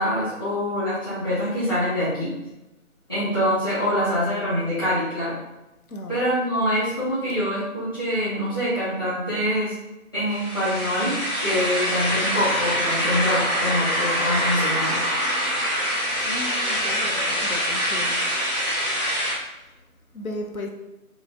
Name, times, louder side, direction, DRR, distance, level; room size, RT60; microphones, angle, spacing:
voice 1, 0.0-2.3 3.1-5.3 6.1-9.7 10.1-11.1 11.4-15.0, equal, 15° left, -12 dB, 1.0 m, -25 dB
voice 2, 5.9-6.2 6.6-6.8 16.3-18.3 20.1-20.7, left 1 dB, 75° left, 2 dB, 0.7 m, -35 dB
sound 1, 10.3-19.3, equal, ahead, 0.8 m, -24 dB
3.0 x 2.5 x 3.6 m, 0.94 s
figure-of-eight pair, 160°, 43 cm